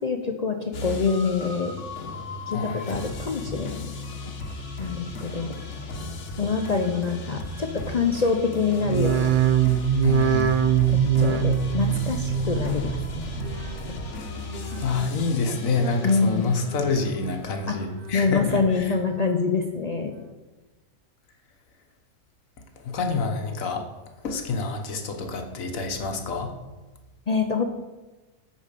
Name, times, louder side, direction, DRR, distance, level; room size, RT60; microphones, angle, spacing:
voice 1, 0.0-1.7 2.5-3.8 4.8-5.6 6.4-9.4 10.9-13.5 13.9-14.0 16.0-16.5 17.7-17.8 18.1-20.1 27.3-27.6, left 4 dB, 45° left, 4 dB, 0.5 m, -26 dB
sound 1, 0.7-18.7, left 2 dB, 65° left, 1.4 m, -36 dB
sound 2, 8.8-14.1 14.4-15.1 15.5-16.2 16.6-17.3 17.7-18.4 18.8-19.4 20.0-20.1, right 8 dB, 50° right, 0.7 m, -25 dB
voice 2, 10.0-10.6 14.8-18.9 22.8-23.8 24.2-26.5, left 4 dB, 85° left, 5 dB, 1.5 m, -27 dB
8.6 x 5.1 x 6.6 m, 1.2 s
omnidirectional pair, 1.4 m